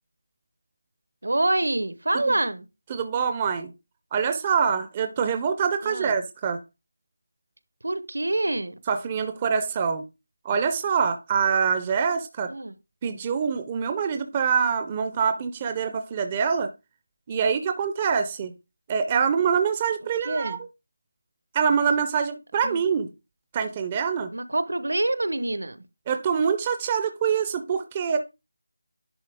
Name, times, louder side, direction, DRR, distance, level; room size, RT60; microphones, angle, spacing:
voice 1, 1.2-2.7 5.8-6.2 7.8-8.7 12.5-12.7 20.2-20.6 22.6-22.8 24.3-25.8, right 2 dB, 75° right, 0.9 m, -26 dB
voice 2, 2.9-3.7 4.1-6.6 8.9-10.0 10.4-12.5 13.0-16.7 17.3-18.5 18.9-20.6 21.5-23.1 23.5-24.3 26.1-28.2, right 6 dB, 15° right, 0.4 m, -25 dB
10.5 x 4.1 x 3.5 m
figure-of-eight pair, 175°, 0 cm